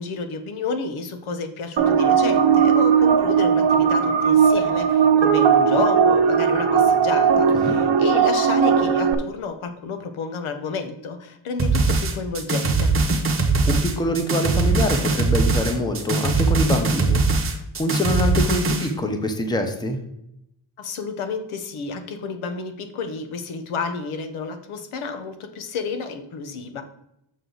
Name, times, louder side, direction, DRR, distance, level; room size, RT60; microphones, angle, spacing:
voice 1, 0.0-12.9 20.8-26.8, left 5 dB, 85° left, 8 dB, 1.1 m, -31 dB
sound 1, 1.8-9.1, right 7 dB, 65° right, 0.9 m, -18 dB
sound 2, 11.6-18.9, right 3 dB, 25° right, 0.9 m, -21 dB
voice 2, 13.7-20.0, left 1 dB, 10° left, 6 dB, 0.7 m, -25 dB
6.5 x 6.3 x 3.9 m, 0.81 s
wide cardioid pair, 175°, 48 cm